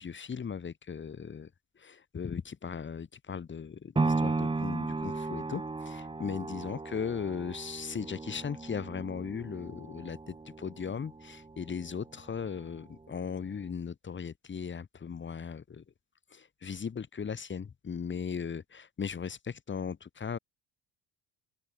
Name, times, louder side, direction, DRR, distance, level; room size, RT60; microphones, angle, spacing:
voice 1, 0.0-1.5 1.8-15.8 16.3-20.4, left 6 dB, 30° left, 5.5 m, -38 dB
sound 1, 4.0-12.1 12.5-12.6, right 3 dB, 15° right, 2.2 m, -35 dB
open air
cardioid pair, 125°, 37 cm